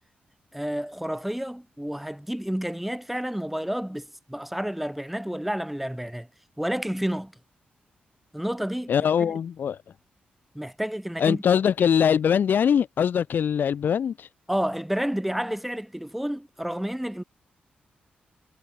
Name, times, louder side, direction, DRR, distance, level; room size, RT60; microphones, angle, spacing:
voice 1, 0.5-6.3 6.6-7.3 8.3-8.9 9.2-9.3 10.5-11.4 14.5-17.2, equal, 5° right, 4.9 m, -30 dB
voice 2, 8.9-9.8 11.2-14.3, left 8 dB, 70° left, 4.1 m, -22 dB
cardioid pair, 90°, 3 cm